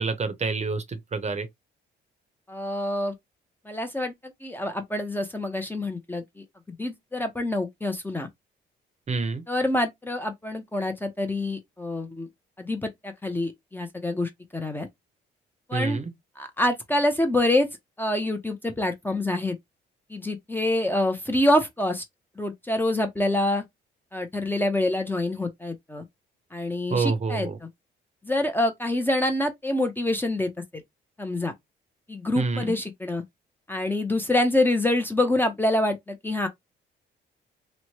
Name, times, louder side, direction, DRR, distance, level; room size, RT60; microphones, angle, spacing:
voice 1, 0.0-1.5 9.1-9.4 15.7-16.1 26.9-27.6 32.4-32.7, right 4 dB, 35° right, 0.7 m, -27 dB
voice 2, 2.5-3.1 3.7-4.1 4.4-8.3 9.5-12.3 12.6-14.9 15.7-16.0 16.4-17.7 18.0-19.6 20.1-22.0 22.4-23.6 24.1-26.0 26.5-27.7 28.2-30.8 31.2-31.5 32.1-33.2 33.7-36.5, left 1 dB, 10° left, 0.6 m, -26 dB
3.1 x 2.1 x 2.8 m
cardioid pair, 90°, 20 cm